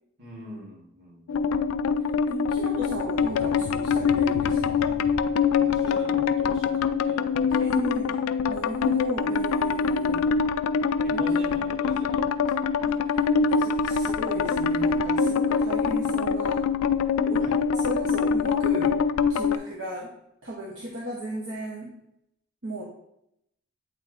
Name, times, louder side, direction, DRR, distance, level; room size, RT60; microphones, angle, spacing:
voice 1, 0.2-2.0 5.5-8.1 11.0-12.5 17.4-17.6, equal, 50° right, -4 dB, 2.2 m, -44 dB
sound 1, 1.3-19.6, left 5 dB, 80° left, 0.3 m, -24 dB
voice 2, 2.3-4.9 7.6-8.2 8.5-10.3 11.1-11.2 12.8-16.6 17.2-17.5 17.7-19.0 19.3-20.1 20.4-21.9 22.6-22.8, right 1 dB, 65° right, -3 dB, 1.1 m, -35 dB
8.0 x 3.4 x 4.1 m, 0.77 s
head